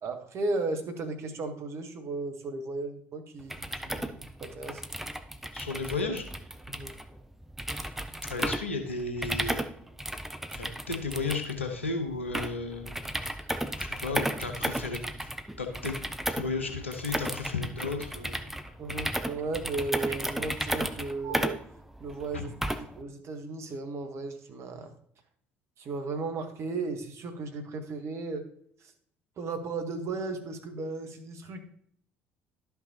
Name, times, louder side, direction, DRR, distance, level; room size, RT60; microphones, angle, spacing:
voice 1, 0.0-4.8 6.7-6.9 18.8-21.6 22.0-24.9 25.8-28.5 29.4-31.6, right 3 dB, 45° right, 6 dB, 1.3 m, -35 dB
sound 1, 3.4-23.0, right 1 dB, 5° right, 0.7 m, -34 dB
voice 2, 5.5-6.2 8.2-9.6 10.5-12.9 13.7-15.3 15.6-16.0 16.3-18.4 22.3-22.4, left 3 dB, 85° left, 5 dB, 1.0 m, -34 dB
11.5 x 5.8 x 2.9 m, 0.64 s
figure-of-eight pair, 55°, 6 cm